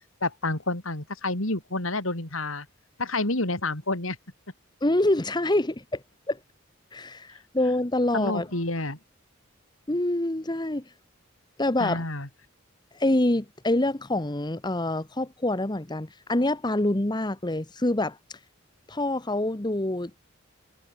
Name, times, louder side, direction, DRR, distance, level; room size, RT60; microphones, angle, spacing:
voice 1, 0.2-2.7 3.0-4.2 8.1-9.0 11.8-12.3, left 2 dB, 75° left, 4.7 m, -29 dB
voice 2, 4.8-6.4 6.9-8.5 9.9-10.8 11.6-12.0 12.9-18.4 18.9-20.1, left 1 dB, 20° left, 1.1 m, -26 dB
head